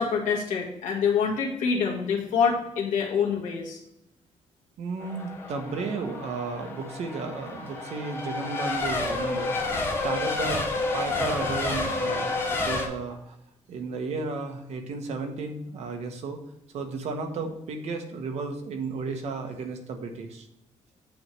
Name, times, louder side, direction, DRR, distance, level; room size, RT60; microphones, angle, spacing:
voice 1, 0.0-3.8, left 6 dB, 90° left, -1 dB, 1.7 m, -26 dB
voice 2, 4.8-9.7 10.0-10.7 10.9-13.4 13.7-16.4 16.7-20.5, right 4 dB, 60° right, 5 dB, 1.1 m, -33 dB
Race car auto racing / Accelerating revving vroom / Mechanisms, 5.0-12.9, left 3 dB, 20° left, 1.0 m, -30 dB
8.4 x 3.2 x 5.9 m, 0.83 s
cardioid pair, 165°, 12 cm